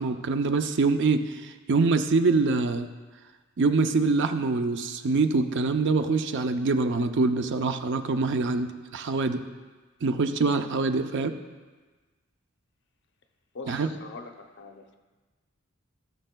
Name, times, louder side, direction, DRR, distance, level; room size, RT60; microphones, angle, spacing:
voice 1, 0.0-2.9 3.6-9.4 10.0-11.3 13.7-13.9, right 3 dB, 60° right, 8 dB, 0.5 m, -25 dB
voice 2, 13.5-15.0, left 3 dB, 60° left, 5 dB, 0.7 m, -43 dB
17.5 x 6.4 x 2.3 m, 1.3 s
head